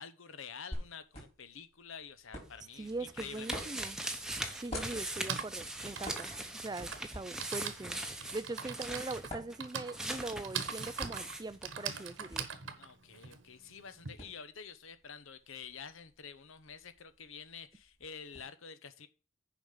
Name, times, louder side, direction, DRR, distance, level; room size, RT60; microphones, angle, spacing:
voice 1, 0.0-3.6 12.8-19.1, left 6 dB, 70° left, 0.9 m, -48 dB
sound 1, 0.7-18.4, equal, 30° left, 3.7 m, -50 dB
sound 2, 2.4-12.1 12.3-12.4, right 1 dB, 5° right, 0.8 m, -41 dB
voice 2, 2.8-4.0 4.5-8.0 8.3-12.5, right 2 dB, 20° right, 0.3 m, -41 dB
Typing, 3.9-4.0 5.0-14.1, right 7 dB, 65° right, 1.1 m, -42 dB
7.1 x 5.2 x 7.1 m
head